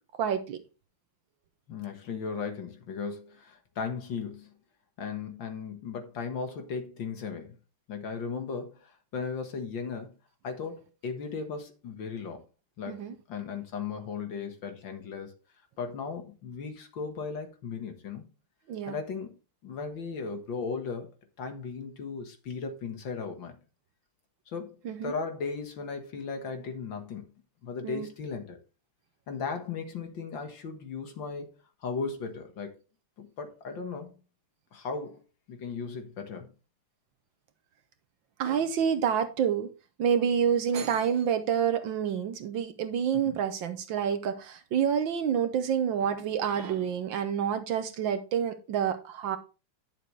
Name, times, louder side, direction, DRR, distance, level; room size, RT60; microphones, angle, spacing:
voice 1, 0.2-0.6 12.9-13.1 18.7-19.0 24.8-25.1 27.8-28.1 38.4-39.7 40.0-49.4, right 8 dB, 65° right, 1.5 m, -28 dB
voice 2, 1.7-4.5 5.0-7.6 7.9-10.1 10.4-12.4 12.8-13.0 13.3-15.4 15.8-18.3 18.9-19.3 19.6-21.1 21.4-23.6 24.5-24.8 25.0-27.2 27.6-28.6 29.3-31.5 31.8-32.8 33.2-34.2 34.7-35.2 35.5-36.5 43.3-43.4, left 5 dB, 60° left, 2.1 m, -36 dB
10.5 x 6.8 x 3.2 m
omnidirectional pair, 2.4 m